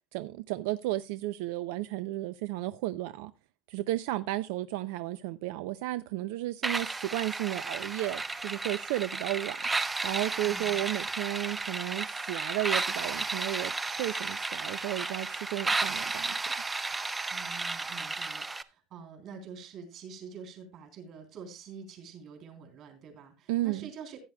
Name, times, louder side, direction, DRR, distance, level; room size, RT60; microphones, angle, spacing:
voice 1, 0.1-3.3 3.7-9.6 10.0-16.4 23.5-23.9, right 16 dB, 80° right, 0.4 m, -33 dB
sound 1, 6.6-18.6, right 3 dB, 10° right, 0.4 m, -33 dB
voice 2, 10.4-10.8 17.3-24.2, right 6 dB, 40° right, 3.3 m, -46 dB
15.5 x 9.5 x 2.2 m
cardioid pair, 170°, 0 cm